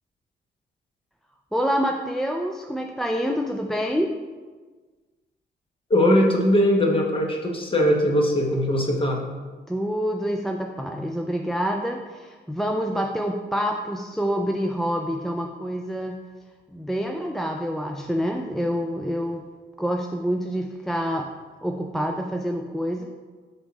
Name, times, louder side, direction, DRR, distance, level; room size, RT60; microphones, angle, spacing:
voice 1, 1.5-4.1 9.7-16.2 16.7-19.5 19.8-21.3 21.6-23.1, equal, ahead, 2 dB, 0.3 m, -27 dB
voice 2, 5.9-9.2, equal, 30° left, 1 dB, 1.0 m, -20 dB
7.1 x 3.4 x 4.0 m, 1.4 s
cardioid pair, 110°, 18 cm